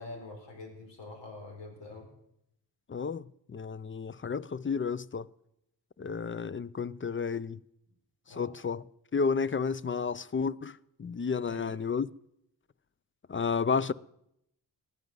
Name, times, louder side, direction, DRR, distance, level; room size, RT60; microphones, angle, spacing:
voice 1, 0.0-2.1 8.3-8.6 11.4-11.8, left 2 dB, 65° left, 4.6 m, -45 dB
voice 2, 2.9-5.3 6.0-7.6 8.3-8.8 9.1-12.1 13.3-13.9, left 5 dB, 25° left, 0.7 m, -31 dB
15.5 x 11.0 x 8.0 m
supercardioid pair, 40°, 45 cm